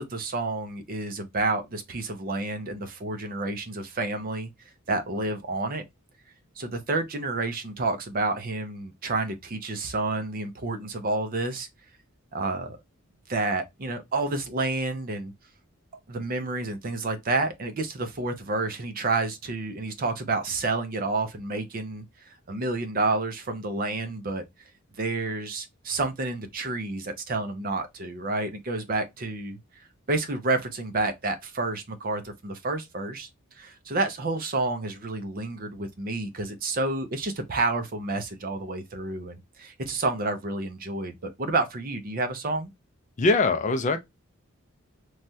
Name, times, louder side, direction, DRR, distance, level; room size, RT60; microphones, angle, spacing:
voice 1, 0.0-4.5 4.9-5.8 6.6-11.7 12.3-12.8 13.3-15.3 16.1-24.4 24.9-42.7, right 3 dB, 40° right, 0.5 m, -29 dB
voice 2, 43.2-44.0, left 3 dB, 35° left, 0.4 m, -22 dB
3.1 x 2.3 x 2.6 m
head